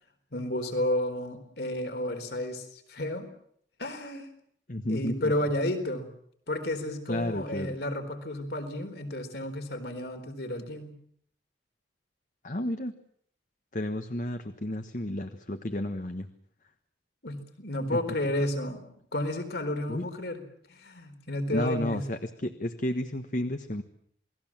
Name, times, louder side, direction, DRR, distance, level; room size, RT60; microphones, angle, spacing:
voice 1, 0.3-3.3 3.8-4.3 4.9-6.1 6.5-11.0 17.2-18.8 19.1-20.4 20.7-22.0, left 1 dB, 65° left, 7 dB, 4.1 m, -32 dB
voice 2, 4.7-5.3 7.1-7.8 12.4-12.9 13.7-16.3 19.9-20.1 21.5-23.8, left 1 dB, 45° left, 8 dB, 1.3 m, -32 dB
28.5 x 20.5 x 7.5 m, 0.66 s
head